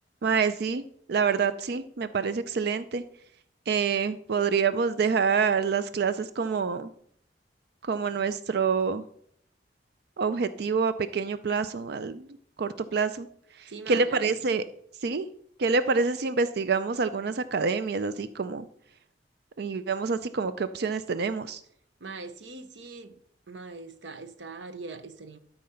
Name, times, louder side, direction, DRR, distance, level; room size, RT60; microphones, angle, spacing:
voice 1, 0.2-0.8 1.1-3.0 3.7-6.9 7.8-9.0 10.2-12.3 12.6-13.3 13.5-14.6 15.0-15.3 15.6-18.7 19.6-21.6, right 5 dB, 60° right, 0.4 m, -27 dB
voice 2, 13.7-14.4 22.0-23.2 23.5-25.4, right 3 dB, 85° right, 0.8 m, -41 dB
12.5 x 4.2 x 5.6 m
head